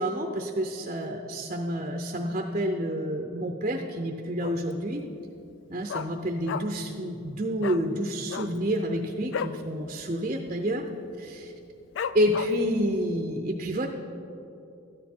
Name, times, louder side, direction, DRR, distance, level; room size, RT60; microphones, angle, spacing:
voice 1, 0.0-5.0 5.7-10.8 11.2-11.5 12.1-13.9, equal, 35° right, 4 dB, 0.6 m, -29 dB
Dog, 4.4-4.8 5.1-5.2 5.5-6.9 7.2-7.3 7.6-7.8 8.2-9.6 10.0-10.2 10.4-10.8 11.3-11.4 12.0-12.8 13.2-13.3, left 7 dB, 60° left, 0.3 m, -34 dB
13.5 x 9.4 x 4.4 m, 2.9 s
head